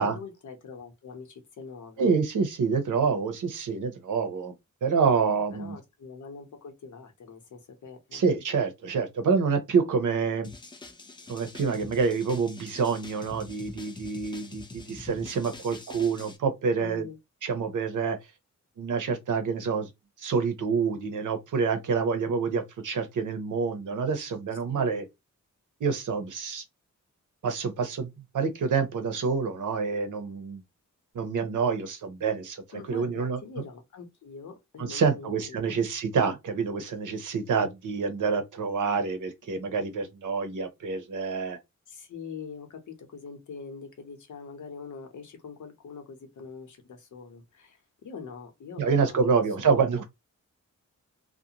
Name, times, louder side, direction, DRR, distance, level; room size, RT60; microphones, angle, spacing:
voice 1, 0.0-2.2 5.3-8.2 16.8-17.2 24.7-24.9 32.7-35.7 41.9-49.2 49.6-50.0, left 5 dB, 80° left, 0.8 m, -43 dB
voice 2, 2.0-4.5 4.8-5.8 8.1-10.5 11.3-17.0 17.4-18.2 18.8-19.9 20.2-25.0 25.8-26.6 27.4-30.6 31.1-33.4 34.8-41.6 48.8-50.0, right 5 dB, 90° right, 0.7 m, -27 dB
sound 1, 10.4-16.4, left 2 dB, 15° left, 0.3 m, -45 dB
2.5 x 2.1 x 2.8 m
wide cardioid pair, 180°, 30 cm